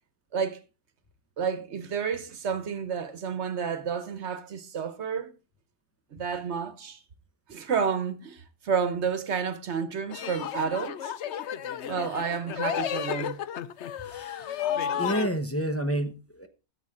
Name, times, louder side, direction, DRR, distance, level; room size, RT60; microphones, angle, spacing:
voice 1, 1.4-5.3 6.1-7.0 7.5-11.1 11.9-13.4, right 6 dB, 70° right, 1.3 m, -30 dB
sound 1, 10.1-15.3, left 9 dB, 75° left, 1.0 m, -32 dB
voice 2, 15.0-16.5, right 1 dB, 15° left, 0.9 m, -29 dB
14.0 x 7.3 x 3.7 m
omnidirectional pair, 1.2 m